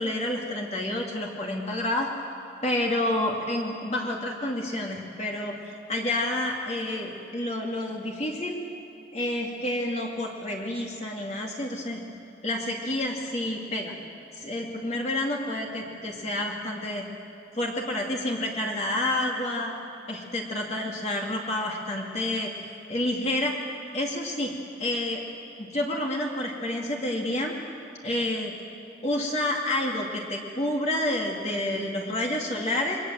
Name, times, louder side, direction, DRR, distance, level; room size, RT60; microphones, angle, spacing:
voice 1, 0.0-2.1 2.6-8.6 9.1-12.0 12.4-13.9 14.4-17.1 17.5-19.7 20.1-22.5 22.9-23.6 23.9-24.5 24.8-25.2 25.6-27.6 28.0-28.5 29.0-33.0, left 1 dB, 35° left, -1 dB, 2.3 m, -29 dB
27.5 x 22.5 x 7.6 m, 2.7 s
head